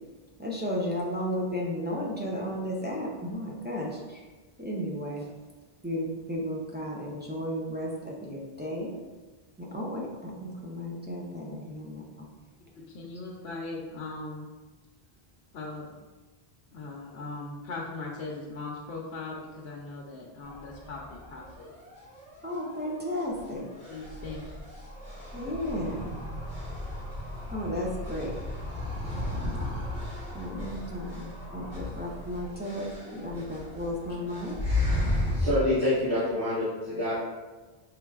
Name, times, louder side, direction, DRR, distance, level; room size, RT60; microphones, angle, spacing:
voice 1, 0.4-4.3 4.6-5.3 5.8-8.9 9.6-12.3 22.4-23.7 25.3-26.2 27.5-28.4 30.3-34.5, equal, 15° right, -4 dB, 0.4 m, -34 dB
voice 2, 12.7-14.5 15.5-16.0 16.7-21.7 23.9-24.6, left 3 dB, 80° left, -3 dB, 0.8 m, -39 dB
sound 1, 20.4-35.4, left 1 dB, 60° right, 1.7 m, -35 dB
voice 3, 35.3-37.1, left 1 dB, 80° right, -15 dB, 1.9 m, -26 dB
5.8 x 3.2 x 2.3 m, 1.3 s
omnidirectional pair, 1.1 m